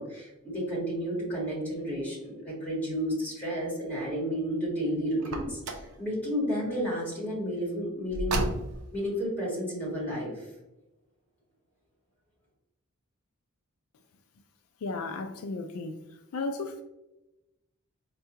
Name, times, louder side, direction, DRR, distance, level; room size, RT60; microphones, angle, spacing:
voice 1, 0.0-8.4 8.9-10.5, equal, 10° left, -5 dB, 1.4 m, -32 dB
Car, 5.2-6.0 8.1-9.0, right 2 dB, 80° right, 0.5 m, -32 dB
voice 2, 14.8-16.0 16.3-16.8, left 3 dB, 70° left, 6 dB, 0.3 m, -34 dB
4.5 x 2.2 x 2.8 m, 0.97 s
head